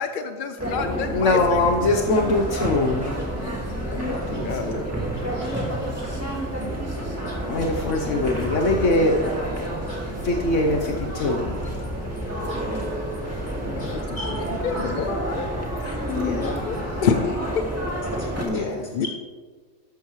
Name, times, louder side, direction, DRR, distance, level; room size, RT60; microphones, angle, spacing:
voice 1, 0.0-1.6 3.8-4.9 13.8-15.5 15.8-17.6 18.9-19.1, left 6 dB, 55° left, 7 dB, 0.6 m, -29 dB
voice 2, 0.6-3.2 4.0-4.8 5.4-5.7 7.5-9.2 10.2-11.6 16.1-16.5 18.4-18.9, left 2 dB, 70° left, 2 dB, 1.2 m, -23 dB
sound 1, 0.6-18.4, right 1 dB, 10° right, 2.1 m, -29 dB
voice 3, 4.1-4.5 5.3-5.7 5.9-6.8 7.2-7.4 7.8-7.9 9.9-10.0 11.2-11.3 11.6-11.9 12.5-14.7 16.4-16.7 18.2-18.3 18.5-19.1, left 1 dB, 35° left, -4 dB, 2.6 m, -41 dB
13.0 x 12.0 x 3.2 m, 1.5 s
omnidirectional pair, 1.3 m